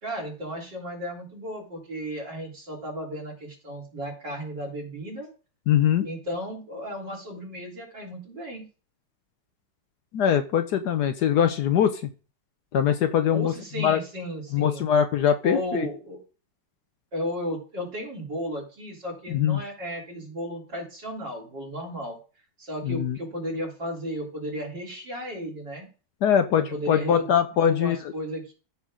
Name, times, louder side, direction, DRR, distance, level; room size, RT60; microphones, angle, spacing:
voice 1, 0.0-5.3 6.0-8.6 13.3-14.9 15.4-16.2 17.1-22.2 22.6-25.9 26.5-27.3 27.6-28.5, equal, 65° right, 1 dB, 4.1 m, -34 dB
voice 2, 5.7-6.1 10.1-12.0 12.7-14.0 14.5-15.9 19.3-19.6 22.8-23.2 26.2-28.0, left 9 dB, 65° left, 9 dB, 1.2 m, -22 dB
14.0 x 5.9 x 3.7 m, 0.37 s
omnidirectional pair, 2.1 m